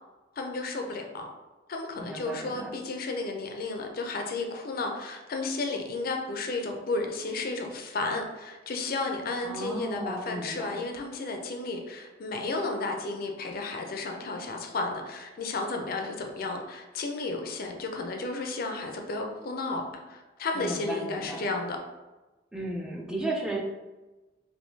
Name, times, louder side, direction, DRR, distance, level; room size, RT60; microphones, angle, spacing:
voice 1, 0.4-1.3 1.7-19.8 20.1-21.8, left 3 dB, 50° left, 3 dB, 0.5 m, -33 dB
voice 2, 2.0-2.7 9.4-10.8 20.5-21.5 22.5-23.6, right 1 dB, 5° right, -2 dB, 0.5 m, -35 dB
3.5 x 2.6 x 2.7 m, 1.1 s
head